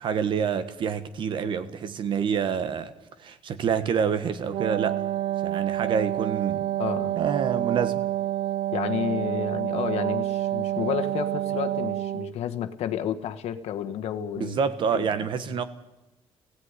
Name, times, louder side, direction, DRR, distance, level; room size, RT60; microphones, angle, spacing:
voice 1, 0.0-2.9 3.2-5.0 5.4-6.7 7.1-8.1 14.4-15.6, right 7 dB, 50° right, 1.4 m, -27 dB
Wind instrument woodwind instrument, 4.4-12.4, right 13 dB, 70° right, 0.7 m, -28 dB
voice 2, 6.8-7.2 8.7-14.6 14.9-15.1, left 9 dB, 85° left, 1.4 m, -31 dB
18.5 x 16.5 x 9.8 m
cardioid pair, 170°, 10 cm